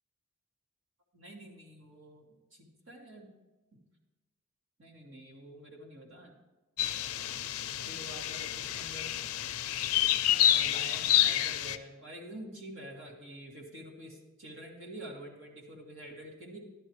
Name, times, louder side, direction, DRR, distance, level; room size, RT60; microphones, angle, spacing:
voice 1, 1.1-3.3 3.7-3.8 4.8-6.3 7.9-9.1 10.3-16.6, right 1 dB, 60° right, -1 dB, 2.1 m, -47 dB
sound 1, 6.8-11.8, left 12 dB, 85° left, 0.5 m, -29 dB
12.5 x 12.0 x 3.1 m, 1.1 s
head